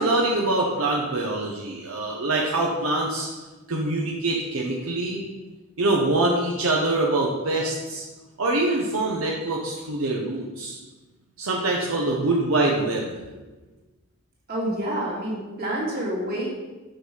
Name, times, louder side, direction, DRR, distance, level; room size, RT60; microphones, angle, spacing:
voice 1, 0.0-3.3 3.7-5.2 5.8-8.0 8.4-10.8 11.4-13.1, right 2 dB, 80° right, -2 dB, 0.9 m, -24 dB
voice 2, 14.5-16.5, right 1 dB, 50° right, -5 dB, 2.4 m, -28 dB
6.4 x 5.9 x 5.1 m, 1.2 s
head